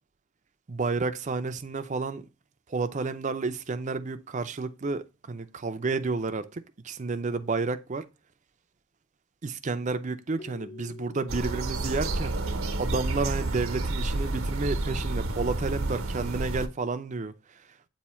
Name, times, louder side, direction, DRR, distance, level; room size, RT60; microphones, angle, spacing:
voice 1, 0.7-2.2 2.7-8.1 9.4-12.4 12.8-17.3, right 3 dB, 35° right, 0.5 m, -31 dB
Keyboard (musical), 10.4-13.2, left 4 dB, 25° left, 0.4 m, -49 dB
sound 1, 11.3-16.7, right 2 dB, 85° right, 0.9 m, -30 dB
8.2 x 2.7 x 4.3 m
head